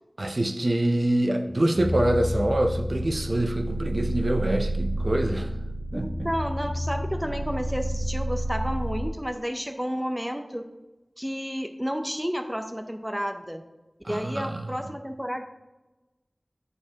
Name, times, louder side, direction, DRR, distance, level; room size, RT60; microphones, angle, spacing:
voice 1, 0.2-5.5 5.9-6.3 14.0-14.7, right 1 dB, 65° right, 3 dB, 0.5 m, -25 dB
sound 1, 1.8-9.1, equal, 85° left, 1.2 m, -30 dB
voice 2, 5.9-10.6 11.2-13.6 14.1-15.4, equal, 5° right, 6 dB, 0.6 m, -31 dB
10.5 x 4.6 x 2.9 m, 1.1 s
wide cardioid pair, 55°, 0 cm